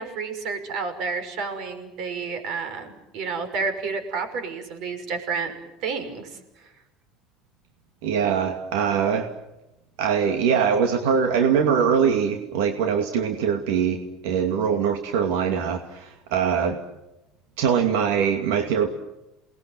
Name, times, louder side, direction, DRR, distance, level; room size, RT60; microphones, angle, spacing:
voice 1, 0.0-5.5 5.8-6.7, right 4 dB, 55° right, 8 dB, 5.7 m, -30 dB
voice 2, 8.0-9.3 10.0-16.8 17.6-18.9, right 7 dB, 85° right, 5 dB, 2.5 m, -22 dB
29.0 x 20.5 x 9.1 m, 0.94 s
cardioid pair, 155°, 0 cm